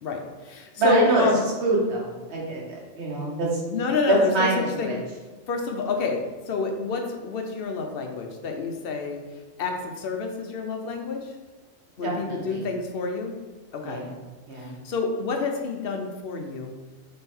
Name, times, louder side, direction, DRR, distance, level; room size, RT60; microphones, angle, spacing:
voice 1, 0.0-1.5 3.7-5.0 5.5-9.2 9.6-11.3 12.0-13.3 13.7-14.1 14.6-16.7, left 4 dB, 60° left, 3 dB, 0.7 m, -28 dB
voice 2, 0.8-1.3 1.6-3.6 4.1-5.0 12.0-12.6 13.8-14.1 14.5-14.7, right 2 dB, 55° right, -4 dB, 1.4 m, -25 dB
3.7 x 3.3 x 4.3 m, 1.2 s
omnidirectional pair, 1.4 m